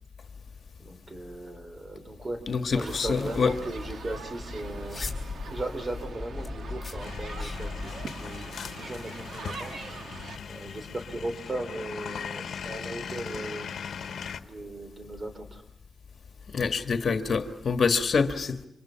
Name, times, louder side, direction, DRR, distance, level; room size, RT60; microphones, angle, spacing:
voice 1, 0.8-2.4 2.7-5.0 5.4-9.7 10.4-13.7 14.4-15.6, right 2 dB, 35° right, 3.4 m, -37 dB
voice 2, 2.5-3.5 16.5-18.7, left 5 dB, 60° left, 1.6 m, -26 dB
sound 1, 2.7-8.1, left 3 dB, 25° left, 4.2 m, -38 dB
sound 2, 2.7-10.4, right 4 dB, 80° right, 2.0 m, -43 dB
sound 3, 7.0-14.4, left 7 dB, 90° left, 1.1 m, -39 dB
29.0 x 26.0 x 5.8 m
wide cardioid pair, 100°, 0 cm